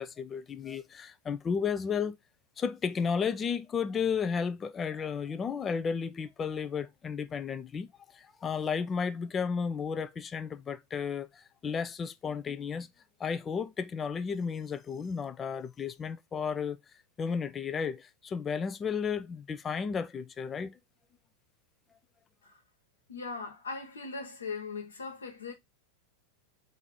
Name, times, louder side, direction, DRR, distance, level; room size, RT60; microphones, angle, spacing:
voice 1, 0.0-2.2 2.6-7.9 8.1-12.9 13.2-16.8 17.2-20.8, left 6 dB, 20° left, 0.4 m, -33 dB
voice 2, 23.1-25.5, left 4 dB, 70° left, 1.3 m, -39 dB
4.7 x 2.6 x 3.7 m
figure-of-eight pair, 90°, 0 cm